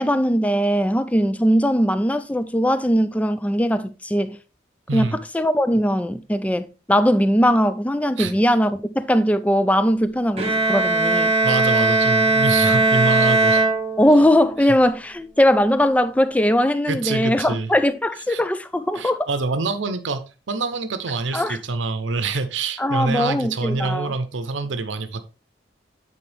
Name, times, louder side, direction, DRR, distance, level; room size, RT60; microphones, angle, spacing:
voice 1, 0.0-4.4 4.9-11.3 14.0-19.3 21.3-21.6 22.8-24.1, equal, 10° left, 0.3 m, -20 dB
Bowed string instrument, 10.4-14.4, right 3 dB, 35° right, 1.1 m, -19 dB
voice 2, 11.4-13.6 16.9-17.7 18.3-18.4 18.9-25.3, right 3 dB, 85° right, 0.7 m, -26 dB
8.7 x 4.3 x 3.4 m
head